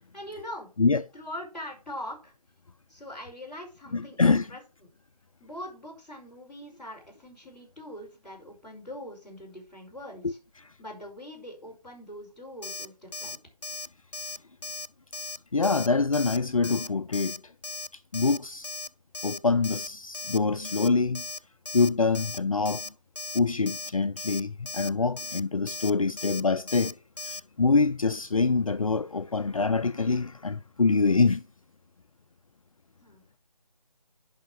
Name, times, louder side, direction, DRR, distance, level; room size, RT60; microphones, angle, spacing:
voice 1, 0.1-0.7 1.1-2.3 2.9-4.9 5.4-10.4 10.8-13.4 33.0-33.4, left 1 dB, ahead, 3.9 m, -42 dB
voice 2, 3.9-4.5 15.5-17.4 18.1-18.7 19.2-21.2 21.7-22.8 23.3-27.0 27.2-31.4, left 4 dB, 55° left, 0.6 m, -25 dB
Alarm, 12.6-12.9 13.1-13.4 13.6-13.9 14.1-14.4 14.6-14.9 15.1-15.4 15.6-15.9 16.1-16.4 16.6-16.9 17.1-17.4 17.6-17.9 18.1-18.4 18.6-18.9 19.1-19.4 19.6-19.9 20.1-20.4 20.6-20.9 21.1-21.4 21.6-21.9 22.1-22.4 22.6-22.9 23.1-23.4 23.7-23.9 24.2-24.4 24.7-24.9 25.2-25.4 25.7-25.9 26.2-26.4 26.7-26.9 27.2-27.4, left 3 dB, 85° left, 0.8 m, -37 dB
9.2 x 5.7 x 6.0 m
figure-of-eight pair, 155°, 21 cm